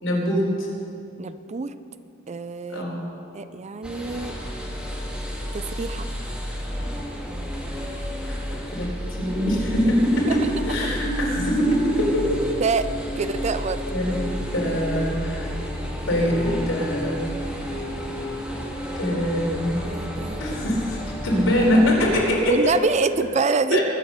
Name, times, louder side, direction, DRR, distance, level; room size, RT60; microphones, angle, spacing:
voice 1, 0.0-0.7 2.7-3.0 8.2-8.4 8.7-8.9 9.2-10.4 10.6-12.4 13.9-15.6 16.1-17.2 19.0-19.8 20.4-22.5 23.7-23.8, equal, 70° left, -3 dB, 4.3 m, -23 dB
voice 2, 1.2-1.7 2.3-2.9 3.3-4.3 5.5-6.1 10.3-10.4 12.6-12.9 13.2-13.8 19.8-20.7 22.5-23.8, right 4 dB, 35° right, 12 dB, 0.4 m, -26 dB
sound 1, 3.8-22.2, equal, 5° right, 2.3 m, -31 dB
22.5 x 7.7 x 6.6 m, 2.6 s
head